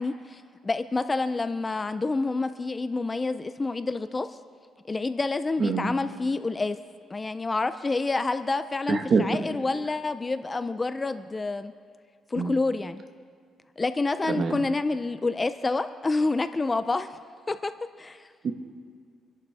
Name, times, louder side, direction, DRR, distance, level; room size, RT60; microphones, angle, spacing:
voice 1, 0.0-4.4 4.9-6.8 7.1-11.7 12.3-13.0 13.8-17.2 17.5-17.7 18.0-18.3, left 3 dB, 20° left, 11 dB, 0.5 m, -28 dB
voice 2, 5.6-5.9 8.9-9.2 12.4-12.6 14.3-14.6 18.4-18.5, right 4 dB, 45° right, 6 dB, 1.3 m, -25 dB
26.5 x 11.0 x 3.5 m, 2.1 s
cardioid pair, 130°, 0 cm